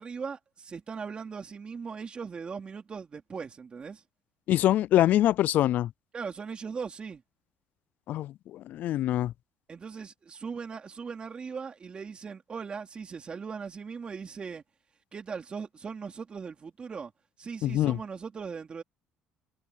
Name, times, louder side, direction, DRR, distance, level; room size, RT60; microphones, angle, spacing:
voice 1, 0.0-4.0 6.1-7.2 9.7-14.6 15.1-17.1 17.4-18.8, right 5 dB, 30° right, 3.5 m, -39 dB
voice 2, 4.5-5.9 8.1-9.3 17.6-18.0, left 13 dB, 60° left, 0.4 m, -24 dB
cardioid pair, 110°, 3 cm